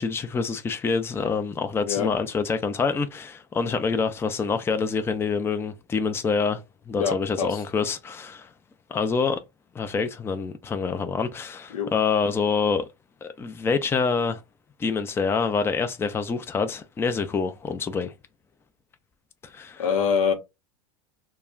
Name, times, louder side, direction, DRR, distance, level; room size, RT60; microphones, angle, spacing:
voice 1, 0.0-8.5 8.9-9.4 9.7-12.8 13.2-14.4 14.8-18.1 19.5-19.8, left 5 dB, 15° left, 0.4 m, -26 dB
voice 2, 7.0-7.6 11.7-11.9 19.8-20.3, left 7 dB, 80° left, 0.8 m, -24 dB
2.3 x 2.1 x 3.6 m
hypercardioid pair, 105°, 18 cm